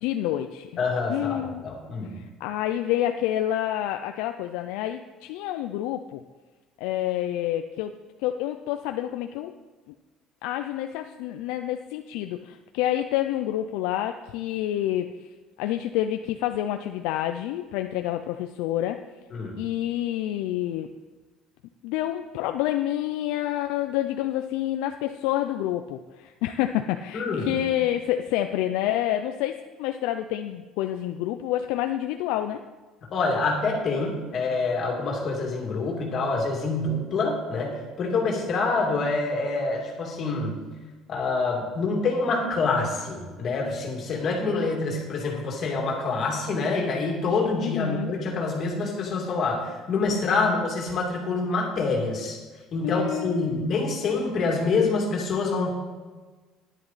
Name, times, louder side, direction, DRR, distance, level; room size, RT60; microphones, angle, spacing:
voice 1, 0.0-0.7 1.1-1.6 2.1-6.2 6.8-7.9 8.2-9.5 10.4-15.1 15.6-19.0 19.6-20.9 21.8-32.6 47.6-48.1 50.1-50.5 52.8-53.8, left 12 dB, 90° left, 6 dB, 0.5 m, -28 dB
voice 2, 0.8-2.1 19.3-19.5 27.1-27.6 33.0-40.5 41.1-52.4 52.7-55.7, left 3 dB, 35° left, 0 dB, 2.3 m, -26 dB
11.0 x 10.0 x 4.1 m, 1.3 s
cardioid pair, 175°, 0 cm